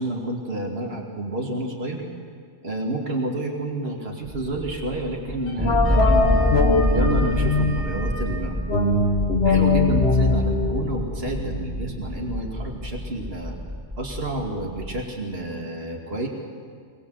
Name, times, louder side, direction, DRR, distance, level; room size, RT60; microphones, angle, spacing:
voice 1, 0.0-2.0 2.6-6.5 6.9-8.6 9.4-13.6 14.0-16.3, right 1 dB, 60° right, 0 dB, 2.8 m, -29 dB
sound 1, 4.2-15.0, left 1 dB, 5° right, 1.5 m, -27 dB
Wind instrument woodwind instrument, 5.4-8.5, right 2 dB, 85° left, 6.6 m, -36 dB
sound 2, 5.6-7.9 8.7-12.0, left 3 dB, 65° left, 2.1 m, -22 dB
23.5 x 19.5 x 8.1 m, 2.1 s
omnidirectional pair, 1.1 m